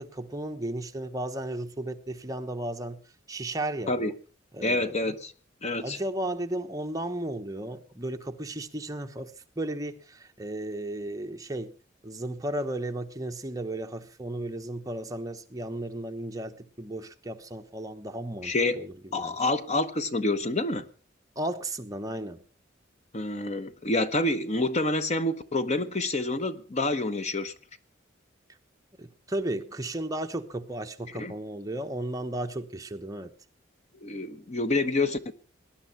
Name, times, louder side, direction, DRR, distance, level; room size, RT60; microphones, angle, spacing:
voice 1, 0.0-3.0 3.3-4.1 4.5-5.0 5.8-9.3 9.6-11.7 12.0-19.3 21.4-22.4 29.0-33.3, right 1 dB, 20° right, 1.1 m, -34 dB
voice 2, 4.6-5.3 5.6-6.0 18.4-18.8 19.1-20.9 23.1-27.5 31.2-31.3 34.0-35.3, left 2 dB, 35° left, 1.0 m, -27 dB
19.0 x 11.0 x 5.8 m
head